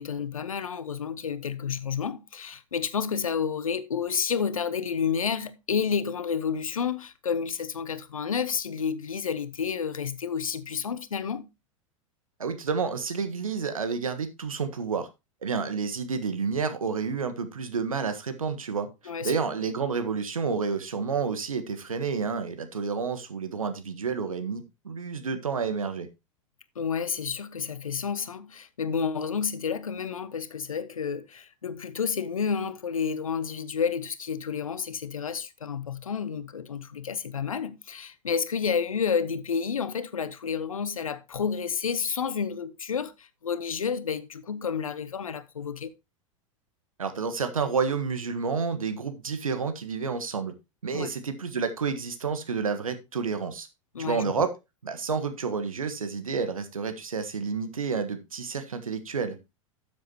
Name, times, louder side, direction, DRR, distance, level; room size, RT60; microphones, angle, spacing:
voice 1, 0.0-11.5 19.1-19.3 26.8-45.9 50.9-51.1 53.9-54.3, left 6 dB, 80° left, 0.9 m, -30 dB
voice 2, 12.4-15.1 15.4-18.9 19.2-26.1 47.0-50.5 50.8-53.7 54.0-54.5 54.8-59.3, right 5 dB, 80° right, 1.5 m, -30 dB
12.5 x 7.3 x 3.0 m
figure-of-eight pair, 90°, 17 cm